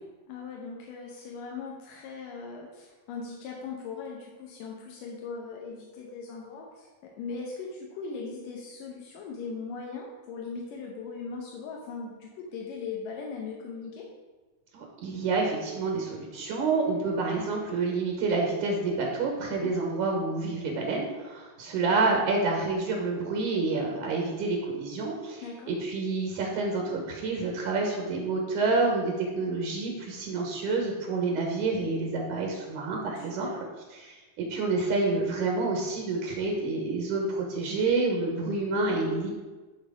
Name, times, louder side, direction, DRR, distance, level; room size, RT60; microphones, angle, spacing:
voice 1, 0.3-14.1 19.6-19.7 25.4-25.7 33.2-33.6, left 4 dB, 85° left, -1 dB, 2.6 m, -39 dB
voice 2, 14.7-33.5 33.9-39.3, right 3 dB, 70° right, 0 dB, 2.5 m, -28 dB
11.0 x 4.2 x 5.1 m, 1.2 s
omnidirectional pair, 3.7 m